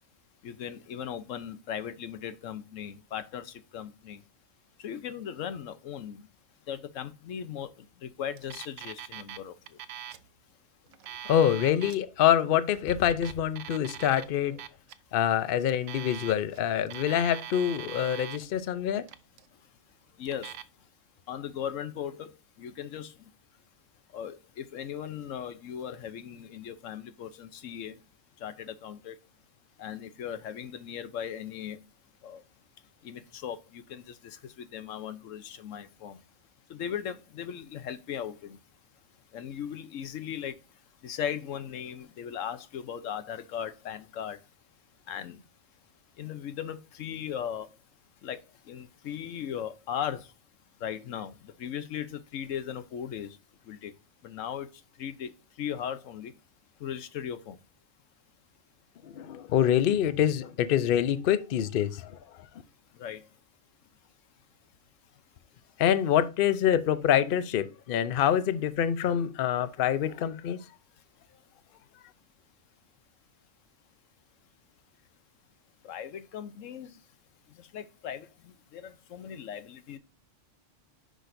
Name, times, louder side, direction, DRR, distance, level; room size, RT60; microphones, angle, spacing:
voice 1, 0.4-4.2 4.8-6.2 6.7-7.7 8.0-9.5 20.2-20.5 21.3-22.3 22.6-23.1 24.1-28.0 28.4-29.1 29.8-31.8 32.2-32.4 33.0-34.0 34.6-36.2 36.7-38.6 39.3-40.5 41.0-44.4 45.1-45.4 46.2-47.7 48.2-48.4 48.7-50.2 50.8-53.3 53.7-53.9 54.2-54.7 55.0-55.3 55.6-56.3 56.8-57.6 63.0-63.2 75.8-76.9 77.7-78.3 78.7-80.0, left 9 dB, 90° left, 1.1 m, -37 dB
Alarm, 8.4-9.4 9.7-10.3 10.9-12.0 12.8-14.2 14.6-14.9 15.7-16.6 16.9-18.5 19.0-19.5 20.2-20.6, right 10 dB, 80° right, 0.9 m, -42 dB
voice 2, 11.2-14.6 15.1-19.1 59.0-62.2 65.8-70.6, left 10 dB, 55° left, 0.7 m, -26 dB
10.0 x 5.1 x 2.6 m
omnidirectional pair, 1.3 m